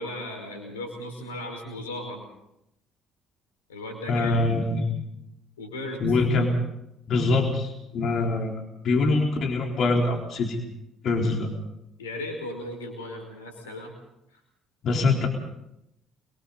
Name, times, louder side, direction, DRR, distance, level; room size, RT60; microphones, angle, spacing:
voice 1, 0.0-2.2 3.7-4.4 5.6-6.0 12.0-13.9 14.3-14.4, left 1 dB, 80° left, 4 dB, 5.2 m, -36 dB
voice 2, 4.1-4.9 6.0-6.6 7.1-10.6 11.0-11.5 14.8-15.3, left 3 dB, 50° left, 1 dB, 4.1 m, -24 dB
30.0 x 24.5 x 4.1 m, 0.82 s
figure-of-eight pair, 50°, 0 cm